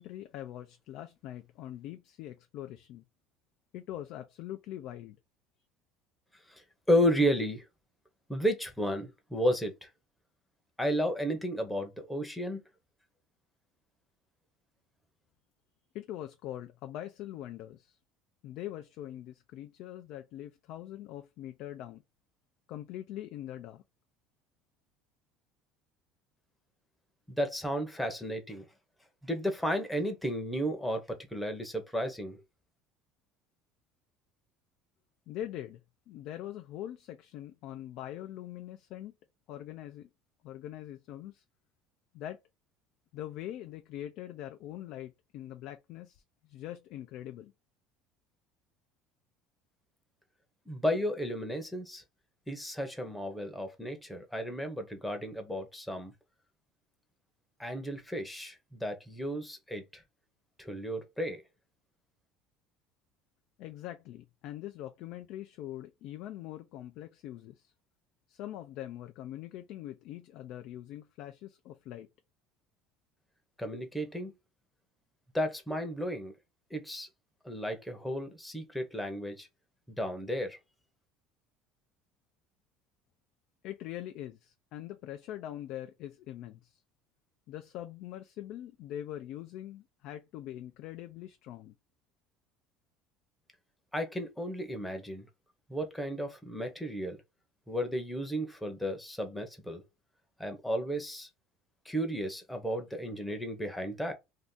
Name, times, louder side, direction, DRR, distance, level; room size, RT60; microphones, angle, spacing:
voice 1, 0.0-3.0 3.7-5.2 15.9-18.0 18.4-22.0 22.7-23.8 35.3-35.8 36.1-39.1 39.5-40.1 40.4-41.4 42.1-42.4 43.1-46.2 46.5-47.5 63.6-67.7 68.3-72.1 83.6-86.7 87.5-91.7, left 12 dB, 60° left, 0.4 m, -43 dB
voice 2, 6.5-7.6 8.3-9.9 10.8-12.6 27.3-28.6 29.2-32.4 50.7-52.0 52.5-56.1 57.6-60.0 60.6-61.4 73.6-74.3 75.3-76.3 76.7-77.1 77.4-79.5 80.0-80.6 93.9-95.3 95.7-97.2 97.7-99.8 100.4-101.3 101.9-104.1, equal, 5° left, 0.7 m, -33 dB
2.7 x 2.4 x 3.6 m
cardioid pair, 135°, 0 cm